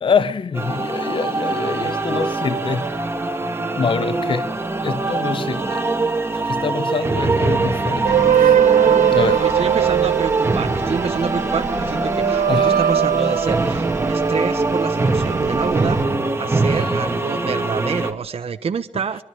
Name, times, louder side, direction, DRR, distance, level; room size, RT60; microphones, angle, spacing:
voice 1, 0.0-3.3 3.8-4.5 4.8-5.8 6.3-8.6 9.1-9.5 12.5-12.9 16.7-17.0, left 5 dB, 45° left, 0.8 m, -25 dB
sound 1, 0.5-18.1, right 3 dB, 20° right, 2.3 m, -22 dB
sound 2, 8.0-14.7 15.1-16.0, right 9 dB, 90° right, 0.9 m, -20 dB
voice 2, 9.4-19.2, right 6 dB, 50° right, 1.1 m, -27 dB
24.0 x 22.5 x 4.9 m
wide cardioid pair, 115°, 13 cm